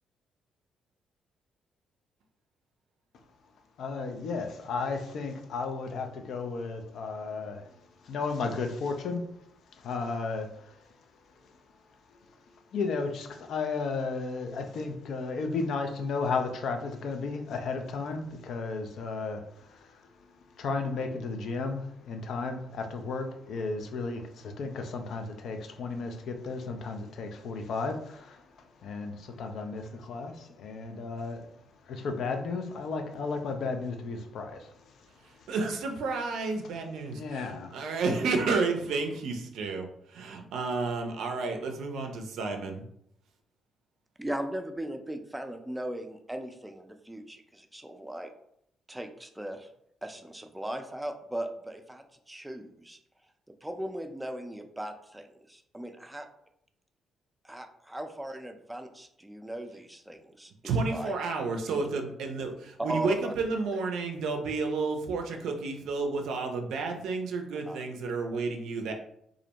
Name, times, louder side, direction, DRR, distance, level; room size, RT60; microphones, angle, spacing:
voice 1, 3.8-9.2 9.7-10.9 11.4-11.6 12.1-35.6 37.1-37.9, left 4 dB, 65° left, 5 dB, 0.4 m, -34 dB
voice 2, 35.5-39.9 40.1-42.8 60.6-68.9, right 4 dB, 70° right, 4 dB, 0.4 m, -31 dB
voice 3, 44.2-48.3 48.9-49.7 50.0-53.0 53.6-56.3 57.4-61.2 61.7-61.8 62.9-63.3 63.7-63.8 67.7-67.8, right 1 dB, 10° right, 6 dB, 0.4 m, -38 dB
2.4 x 2.0 x 2.8 m, 0.72 s
hypercardioid pair, 50°, 0 cm